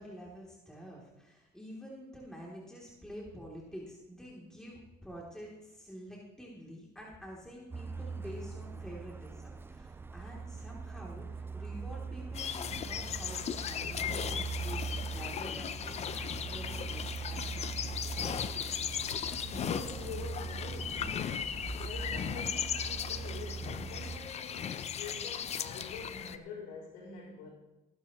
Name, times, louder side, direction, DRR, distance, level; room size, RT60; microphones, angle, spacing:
voice 1, 0.0-17.7, equal, 5° left, -4 dB, 3.3 m, -48 dB
Truck, 7.7-24.2, right 5 dB, 15° right, 0.5 m, -41 dB
sound 1, 12.3-26.4, left 8 dB, 45° left, 0.7 m, -37 dB
voice 2, 19.0-27.5, left 5 dB, 85° left, -8 dB, 5.3 m, -46 dB
17.0 x 12.0 x 3.2 m, 1.0 s
cardioid pair, 95°, 15 cm